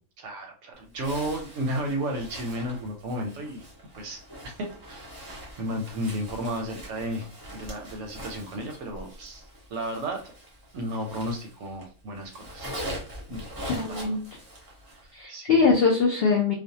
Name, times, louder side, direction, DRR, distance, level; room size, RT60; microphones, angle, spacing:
voice 1, 0.2-3.6 3.9-5.1 5.6-7.3 7.5-9.4 9.7-10.2 10.7-12.7 13.3-14.2 15.0-15.7, right 1 dB, 65° right, 2 dB, 0.8 m, -33 dB
Zipper (clothing), 0.9-11.8 12.1-15.1, equal, 25° right, 0.4 m, -42 dB
voice 2, 13.7-14.2 15.1-16.5, left 4 dB, 85° left, 0 dB, 0.5 m, -22 dB
2.5 x 2.0 x 2.7 m, 0.38 s
omnidirectional pair, 1.6 m